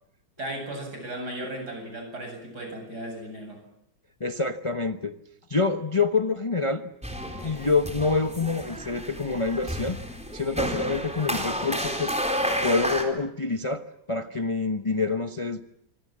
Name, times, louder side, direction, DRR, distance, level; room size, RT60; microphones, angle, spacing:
voice 1, 0.4-3.6, right 1 dB, 55° right, 3 dB, 8.7 m, -36 dB
voice 2, 4.2-5.1 5.5-6.9 7.2-10.0 10.3-12.1 12.6-15.6, left 4 dB, 25° left, 7 dB, 0.8 m, -26 dB
sound 1, 7.0-13.0, equal, 5° right, 4.0 m, -31 dB
27.0 x 24.5 x 7.5 m, 0.76 s
omnidirectional pair, 2.1 m